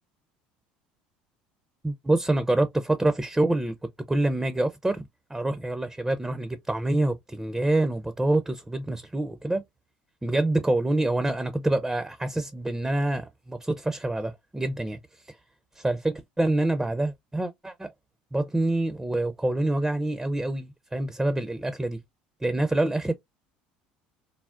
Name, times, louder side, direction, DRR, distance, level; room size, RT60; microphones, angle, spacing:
voice 1, 1.8-3.7 4.1-9.6 10.2-15.0 15.3-15.4 15.8-17.9 18.3-22.0 22.4-23.1, right 2 dB, 10° right, 0.4 m, -26 dB
3.6 x 2.0 x 2.3 m
hypercardioid pair, 75°, 4 cm